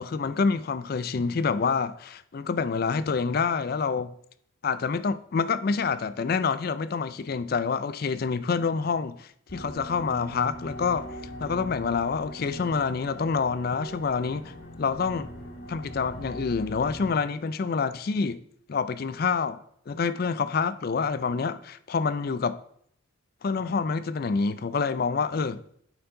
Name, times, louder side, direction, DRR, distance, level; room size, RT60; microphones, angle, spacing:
voice 1, 0.0-4.1 4.6-11.1 11.4-14.5 14.8-15.3 15.7-18.4 18.7-19.6 19.9-22.6 23.4-25.6, left 5 dB, 45° left, 0.4 m, -27 dB
sound 1, 9.5-17.1, equal, 65° left, 2.0 m, -41 dB
8.6 x 4.5 x 3.8 m
head